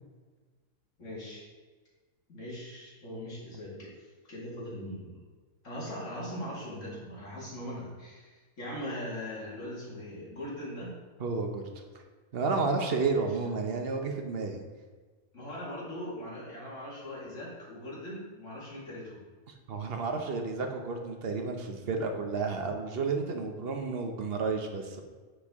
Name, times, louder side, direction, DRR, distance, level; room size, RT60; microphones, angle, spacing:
voice 1, 1.0-1.4 2.3-5.2 5.6-10.9 13.1-13.3 15.3-19.2, equal, 55° left, -6 dB, 2.4 m, -40 dB
voice 2, 11.2-11.6 12.3-14.6 19.7-25.0, right 4 dB, 50° right, 3 dB, 0.9 m, -31 dB
9.7 x 4.5 x 3.6 m, 1.4 s
omnidirectional pair, 1.6 m